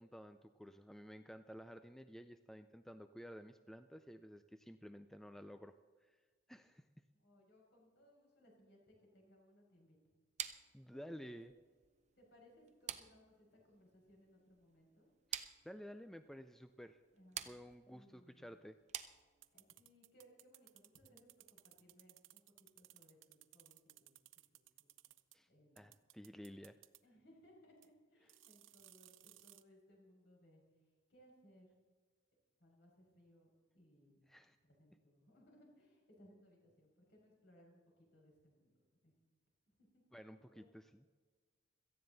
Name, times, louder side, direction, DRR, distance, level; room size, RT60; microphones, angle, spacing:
voice 1, 0.0-5.7 6.0-6.2 6.5-7.0 10.7-11.5 15.3-17.0 17.4-18.8 25.3-25.5 25.8-26.8 28.2-28.3 34.3-34.6 40.1-41.1, equal, ahead, 9 dB, 0.4 m, -53 dB
voice 2, 7.1-10.0 10.9-11.4 12.2-15.1 17.1-17.4 17.8-18.5 19.5-24.1 24.5-24.9 25.5-25.9 27.0-30.6 31.1-31.7 32.6-33.5 33.7-34.3 34.6-38.7 39.0-39.1 39.9-40.0 40.5-40.7, equal, 60° left, -1 dB, 5.8 m, -66 dB
sound 1, 10.4-19.7, right 9 dB, 35° right, 0.7 m, -50 dB
sound 2, 19.4-25.4 25.8-27.0 27.8-27.9 28.3-29.6, right 16 dB, 75° right, 0.6 m, -62 dB
17.5 x 14.0 x 4.0 m, 1.5 s
head